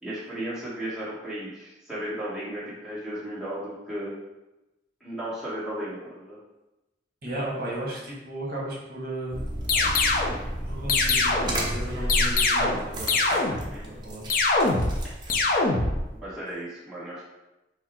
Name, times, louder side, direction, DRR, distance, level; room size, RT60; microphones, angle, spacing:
voice 1, 0.0-4.1 5.0-6.4 13.5-13.9 16.1-17.2, right 1 dB, 5° right, -10 dB, 1.1 m, -35 dB
voice 2, 7.2-9.4 10.7-13.1 13.6-14.4, right 1 dB, 50° right, -5 dB, 1.2 m, -34 dB
sound 1, 9.3-15.6, right 1 dB, 25° right, 0.6 m, -33 dB
sound 2, 9.7-10.4 10.9-11.6 12.1-12.8 13.1-13.7 14.3-15.0 15.3-16.0, left 3 dB, 45° left, 0.5 m, -23 dB
5.6 x 2.1 x 4.3 m, 0.99 s
head